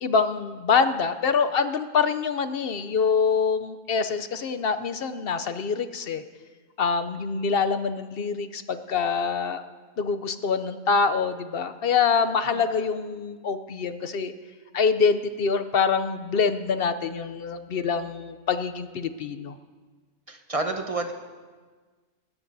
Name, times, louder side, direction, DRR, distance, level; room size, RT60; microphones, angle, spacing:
voice 1, 0.0-6.2 6.8-9.6 10.0-14.3 14.7-19.5, left 5 dB, 55° left, 11 dB, 0.7 m, -25 dB
voice 2, 20.3-21.1, right 2 dB, 30° right, 4 dB, 1.0 m, -29 dB
20.5 x 18.0 x 2.7 m, 1.4 s
omnidirectional pair, 1.4 m